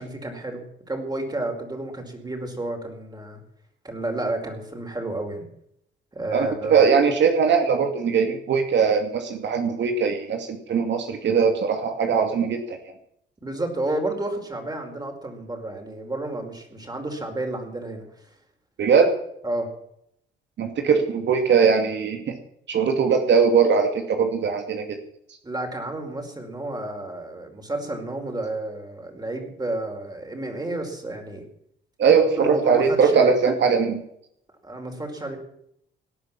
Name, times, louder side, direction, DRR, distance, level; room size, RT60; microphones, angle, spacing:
voice 1, 0.0-3.4 3.8-5.4 6.1-6.9 13.4-18.3 19.4-19.7 25.4-31.4 32.4-33.5 34.6-35.4, right 2 dB, 20° right, 4 dB, 4.8 m, -31 dB
voice 2, 6.3-12.8 18.8-19.1 20.6-22.3 22.7-24.9 32.0-34.0, right 6 dB, 65° right, 5 dB, 2.4 m, -20 dB
18.5 x 10.5 x 7.5 m, 0.74 s
cardioid pair, 90°, 20 cm